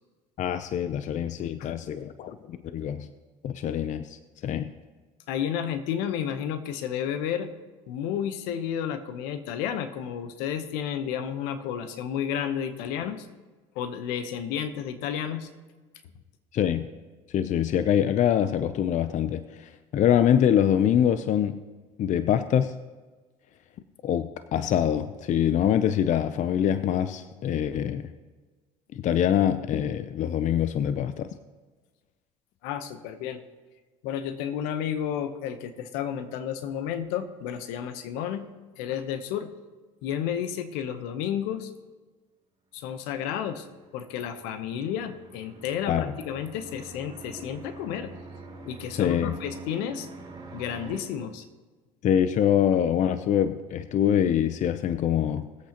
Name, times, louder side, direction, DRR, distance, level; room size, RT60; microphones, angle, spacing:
voice 1, 0.4-3.1 3.4-4.7 16.5-16.9 17.3-21.6 22.0-22.7 24.0-28.1 28.9-31.3 45.9-46.1 48.9-49.4 52.0-55.5, left 9 dB, 50° left, 12 dB, 0.6 m, -24 dB
voice 2, 5.3-7.5 7.9-13.3 13.7-15.5 32.6-33.4 34.0-38.4 38.8-39.5 40.0-41.7 42.7-43.7 43.9-48.1 48.6-50.1 50.5-51.4, left 9 dB, 80° left, 10 dB, 1.0 m, -31 dB
sound 1, 43.7-51.0, right 3 dB, 30° right, 4.1 m, -45 dB
19.5 x 8.2 x 2.9 m, 1.3 s
supercardioid pair, 80°, 16 cm